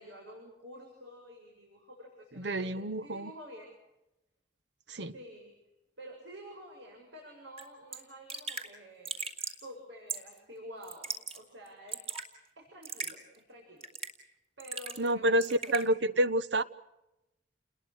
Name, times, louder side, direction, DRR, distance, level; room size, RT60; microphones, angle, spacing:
voice 1, 0.0-3.7 5.1-5.6 6.0-9.2 9.4-13.9 14.6-15.9, equal, 90° right, 7.5 m, -50 dB
voice 2, 2.4-3.3 4.9-5.1 15.0-16.6, right 1 dB, 70° right, 1.1 m, -28 dB
Raindrop / Drip, 7.6-7.7 7.9-8.0 8.3-8.7 9.1-9.6 10.1-10.4 10.8-11.4 11.7-12.3 12.8-13.1 13.8-14.2 14.6-15.1 15.4-15.8, right 5 dB, 35° right, 2.9 m, -38 dB
30.0 x 21.0 x 6.4 m
head